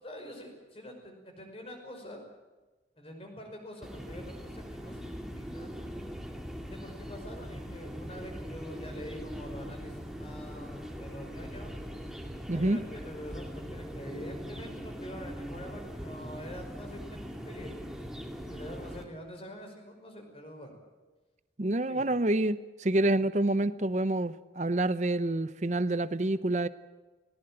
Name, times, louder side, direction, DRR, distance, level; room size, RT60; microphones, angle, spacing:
voice 1, 0.0-2.2 3.0-6.2 6.7-11.8 12.5-17.9 18.5-20.7 21.9-22.1, equal, 30° left, 3 dB, 5.3 m, -46 dB
sound 1, 3.8-19.0, equal, 5° right, 2.3 m, -41 dB
voice 2, 12.5-12.8 21.6-26.7, right 1 dB, 40° right, 14 dB, 0.7 m, -27 dB
19.0 x 18.5 x 8.9 m, 1.2 s
head